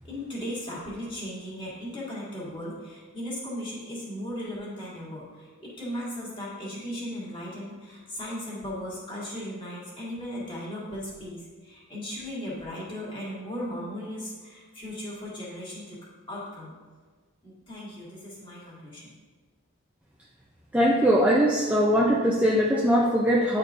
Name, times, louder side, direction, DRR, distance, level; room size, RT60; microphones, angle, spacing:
voice 1, 0.0-16.0 16.3-16.7 17.4-19.1, equal, 20° left, -8 dB, 2.0 m, -37 dB
voice 2, 20.7-23.6, equal, 5° right, -4 dB, 0.4 m, -21 dB
10.0 x 4.5 x 2.5 m, 1.4 s
head